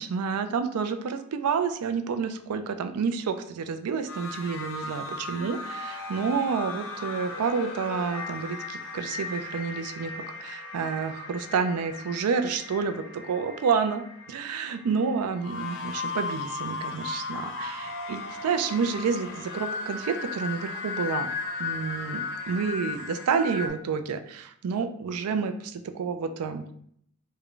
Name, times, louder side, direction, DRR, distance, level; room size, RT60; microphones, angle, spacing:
voice 1, 0.0-14.0 14.3-21.3 21.6-26.6, right 5 dB, 90° right, 9 dB, 0.4 m, -29 dB
sound 1, 4.1-23.7, left 4 dB, 60° left, 0.5 m, -36 dB
3.5 x 2.1 x 3.7 m, 0.67 s
head